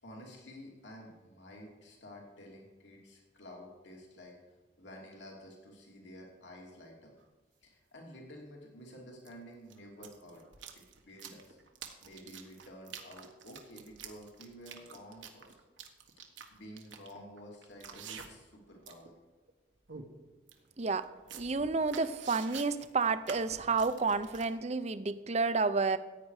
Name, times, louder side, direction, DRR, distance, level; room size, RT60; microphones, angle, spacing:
voice 1, 0.0-4.4 4.8-7.1 7.6-10.4 10.7-11.6 12.0-15.5 16.5-19.1, equal, 75° left, -1 dB, 2.8 m, -51 dB
sound 1, 7.2-7.3 9.2-9.3 9.7-18.5 18.8-19.1 19.5-19.6 19.9-20.1 20.5-20.6 21.0-24.5, right 7 dB, 85° right, 1.4 m, -48 dB
voice 2, 21.3-26.0, right 4 dB, 35° right, 13 dB, 0.6 m, -30 dB
15.0 x 9.2 x 4.9 m, 1.2 s
head